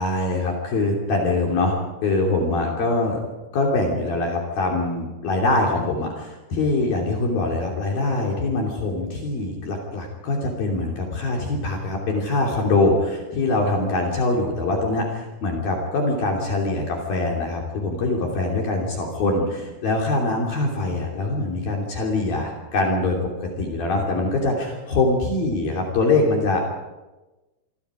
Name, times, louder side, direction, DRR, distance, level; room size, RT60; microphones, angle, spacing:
voice 1, 0.0-1.8 2.0-3.2 3.5-23.2 23.4-26.6, left 2 dB, 55° left, 0 dB, 4.6 m, -23 dB
27.5 x 23.5 x 5.0 m, 1.1 s
omnidirectional pair, 5.3 m